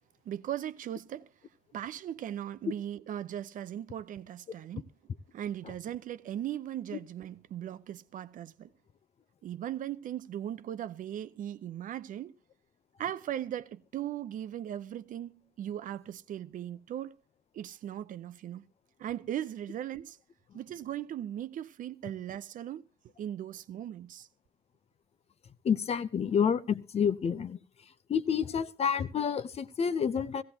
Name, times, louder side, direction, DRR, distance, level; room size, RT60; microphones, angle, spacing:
voice 1, 0.3-1.3 1.7-4.9 5.3-8.7 9.4-12.4 13.0-17.2 17.5-18.7 19.0-20.2 20.5-22.8 23.2-24.3, right 11 dB, 55° right, 0.6 m, -38 dB
voice 2, 25.6-27.6 28.1-30.4, left 7 dB, 40° left, 0.7 m, -29 dB
16.0 x 15.5 x 2.9 m
cardioid pair, 110°, 17 cm